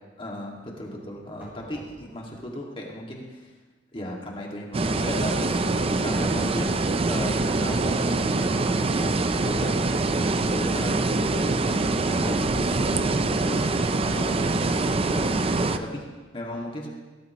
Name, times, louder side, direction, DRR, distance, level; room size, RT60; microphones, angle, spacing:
voice 1, 0.2-3.5 3.9-9.9 10.2-16.9, equal, 30° left, -1 dB, 2.1 m, -36 dB
sound 1, 1.1-2.4 6.9-10.4 14.9-16.2, right 1 dB, 10° right, 2.8 m, -45 dB
sound 2, 4.7-15.8, right 3 dB, 35° right, 0.5 m, -24 dB
18.5 x 12.5 x 3.1 m, 1.3 s
head